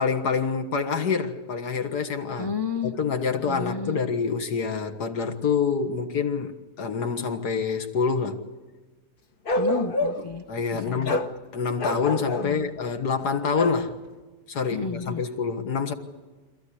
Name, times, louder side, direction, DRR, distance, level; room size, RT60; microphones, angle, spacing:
voice 1, 0.0-2.5 2.9-8.4 10.5-14.0 14.5-15.9, left 5 dB, 75° left, 2.1 m, -26 dB
voice 2, 2.4-3.0 3.5-4.0 9.5-10.4 10.7-11.2 12.4-12.7 14.7-15.2, left 5 dB, 20° left, 0.6 m, -32 dB
Bark, 9.5-10.4 11.0-11.3 11.8-12.5 13.6-13.8, left 1 dB, 40° left, 1.0 m, -27 dB
26.0 x 15.0 x 9.9 m
omnidirectional pair, 1.8 m